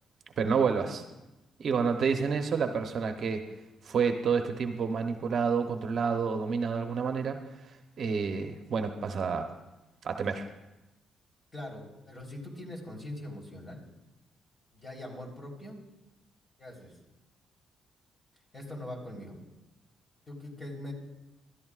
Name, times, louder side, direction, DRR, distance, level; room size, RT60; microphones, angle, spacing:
voice 1, 0.4-1.0 1.6-3.4 3.8-7.4 8.0-9.5 10.0-10.4, right 5 dB, 55° right, 6 dB, 0.9 m, -29 dB
voice 2, 11.5-13.8 14.7-15.8 16.6-16.9 18.5-19.4 20.3-20.9, left 1 dB, 30° left, -1 dB, 3.8 m, -42 dB
21.5 x 13.0 x 2.5 m, 1.0 s
cardioid pair, 90°, 0 cm